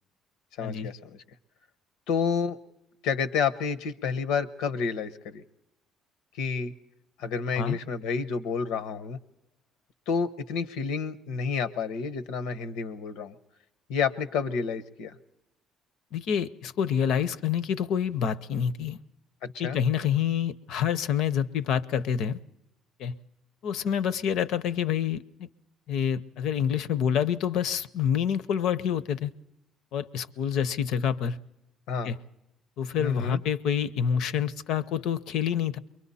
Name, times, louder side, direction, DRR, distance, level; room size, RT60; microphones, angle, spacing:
voice 1, 0.6-1.1 2.1-2.6 3.0-5.4 6.4-6.7 7.2-9.2 10.1-13.3 13.9-15.1 19.4-19.8 31.9-32.1 33.0-33.4, left 6 dB, 85° left, 12 dB, 1.0 m, -29 dB
voice 2, 16.1-19.0 19.6-22.4 23.0-23.1 23.6-25.5 25.9-29.3 29.9-31.4 32.0-32.2 32.8-35.8, left 8 dB, 65° left, 15 dB, 0.7 m, -27 dB
29.0 x 22.5 x 4.2 m, 0.87 s
cardioid pair, 160°, 0 cm